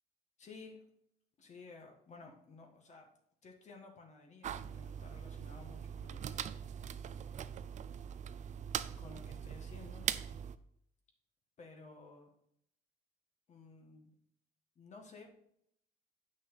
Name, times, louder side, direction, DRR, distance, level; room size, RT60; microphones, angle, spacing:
voice 1, 0.4-0.8 1.4-3.1 3.4-6.5 9.0-10.1 11.6-12.3 13.5-14.1 14.7-15.4, left 3 dB, 45° left, 2 dB, 1.7 m, -54 dB
sound 1, 4.4-10.6, right 8 dB, 45° right, 0.5 m, -41 dB
8.5 x 6.2 x 3.9 m, 0.71 s
cardioid pair, 110°, 17 cm